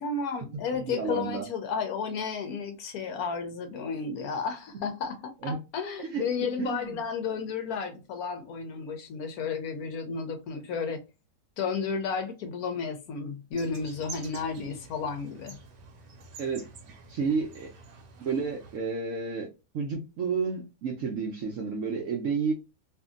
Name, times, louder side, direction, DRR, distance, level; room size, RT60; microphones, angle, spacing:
voice 1, 0.0-11.0 11.6-15.6, left 5 dB, 70° left, 1.0 m, -32 dB
voice 2, 0.8-1.5 5.4-5.6 6.0-7.0 16.4-16.7 17.1-17.7 18.2-19.5 19.7-22.5, right 5 dB, 65° right, 0.8 m, -31 dB
sound 1, 13.5-18.8, right 3 dB, 85° right, 1.3 m, -48 dB
2.8 x 2.5 x 2.4 m
omnidirectional pair, 1.8 m